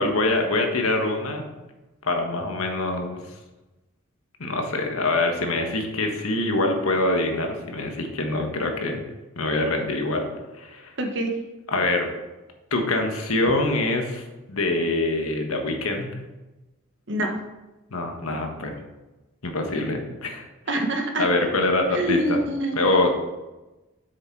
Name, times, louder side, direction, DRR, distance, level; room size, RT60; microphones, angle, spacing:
voice 1, 0.0-1.4 2.0-3.2 4.4-9.0 9.4-10.9 11.7-12.1 12.7-14.2 14.5-16.2 17.9-18.7 19.4-20.8 21.2-22.4 22.7-23.1, left 2 dB, 85° left, 3 dB, 1.5 m, -24 dB
voice 2, 11.0-11.3 17.1-17.4 20.7-21.3 21.9-22.8, right 1 dB, 55° right, 3 dB, 1.3 m, -25 dB
8.1 x 6.6 x 4.7 m, 1.1 s
head